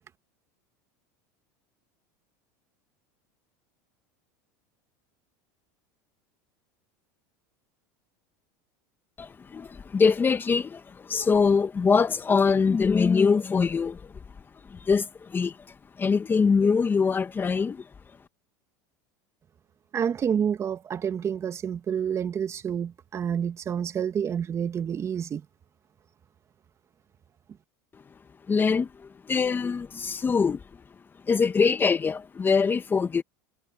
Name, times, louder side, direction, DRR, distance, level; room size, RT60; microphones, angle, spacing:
voice 1, 9.2-14.2 14.7-15.6 16.0-17.9 27.9-28.0 28.5-30.6 31.3-33.2, left 5 dB, 20° left, 1.8 m, -23 dB
voice 2, 19.9-25.4, right 8 dB, 30° right, 2.0 m, -28 dB
supercardioid pair, 110°, 9 cm